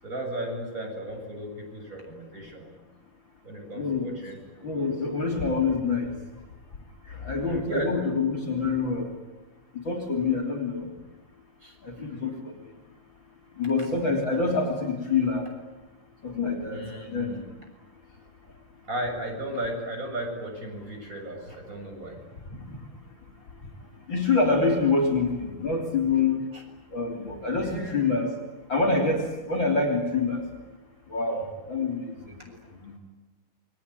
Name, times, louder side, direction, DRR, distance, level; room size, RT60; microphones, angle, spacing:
voice 1, 0.0-2.7 3.4-4.9 7.4-7.9 11.6-12.3 14.1-14.2 16.7-17.5 18.8-22.1 26.5-26.6 27.4-28.1, right 1 dB, 25° right, 2 dB, 7.4 m, -35 dB
voice 2, 3.7-4.1 4.6-6.2 7.1-9.1 9.7-10.9 11.8-12.5 13.6-15.4 16.2-17.4 22.7-22.8 24.1-26.5 26.9-28.3 28.7-30.4 31.1-32.6 32.8-32.9, left 4 dB, 35° left, 3 dB, 3.8 m, -26 dB
29.0 x 22.5 x 9.2 m, 1.2 s
omnidirectional pair, 3.6 m